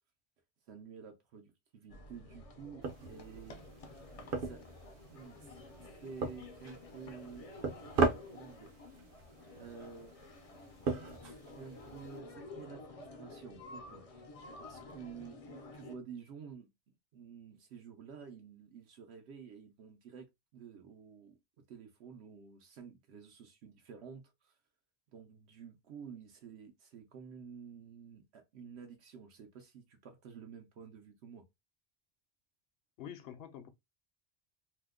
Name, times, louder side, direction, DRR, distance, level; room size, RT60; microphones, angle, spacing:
voice 1, 0.7-3.6 4.4-4.6 5.1-7.5 8.3-8.9 9.6-10.2 10.8-10.9 11.2-14.2 14.6-16.7 17.1-20.3 20.5-21.3 21.7-24.5 25.1-31.4, right 6 dB, 85° right, 0.9 m, -51 dB
sound 1, 1.9-16.0, left 2 dB, 45° left, 0.5 m, -51 dB
sound 2, 2.8-12.2, right 4 dB, 60° right, 0.8 m, -39 dB
voice 2, 33.0-33.7, left 9 dB, 70° left, 0.8 m, -46 dB
2.7 x 2.1 x 3.5 m
omnidirectional pair, 1.1 m